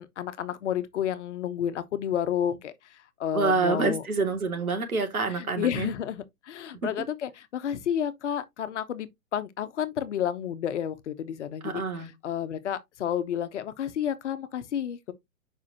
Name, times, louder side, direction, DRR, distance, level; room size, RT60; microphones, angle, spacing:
voice 1, 0.0-2.7 3.2-4.0 5.4-11.8 12.2-15.1, left 9 dB, 55° left, 1.0 m, -31 dB
voice 2, 3.3-5.9 6.8-6.9 11.6-12.1, right 4 dB, 75° right, 2.6 m, -27 dB
7.3 x 5.5 x 2.9 m
figure-of-eight pair, 125°, 43 cm